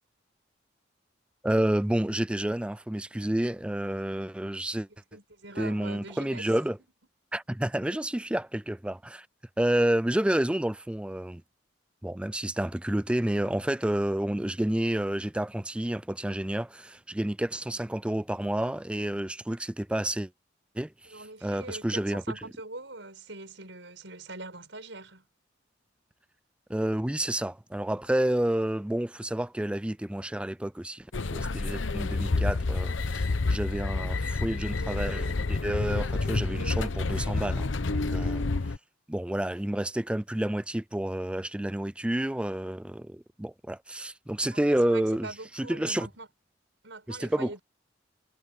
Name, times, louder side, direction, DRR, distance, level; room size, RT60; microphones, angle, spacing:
voice 1, 1.4-4.9 5.6-6.8 7.3-9.3 9.6-11.4 12.0-20.3 20.7-22.2 26.7-38.4 39.1-45.3 45.6-46.1 47.1-47.5, right 1 dB, 5° right, 0.3 m, -29 dB
voice 2, 5.1-6.6 7.8-8.0 21.1-25.3 44.5-46.3 46.8-47.6, right 2 dB, 70° right, 7.9 m, -43 dB
sound 1, 31.1-38.8, left 3 dB, 85° left, 0.9 m, -29 dB
head